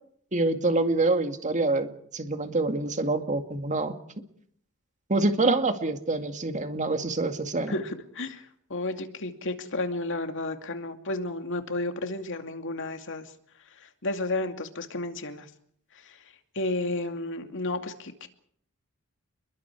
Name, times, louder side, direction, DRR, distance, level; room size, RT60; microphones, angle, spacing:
voice 1, 0.3-3.9 5.1-7.7, right 2 dB, 35° right, 7 dB, 2.2 m, -26 dB
voice 2, 7.7-13.3 13.8-15.5 16.0-16.2 16.5-18.3, left 2 dB, 60° left, 6 dB, 2.5 m, -32 dB
29.0 x 22.0 x 4.8 m, 0.64 s
head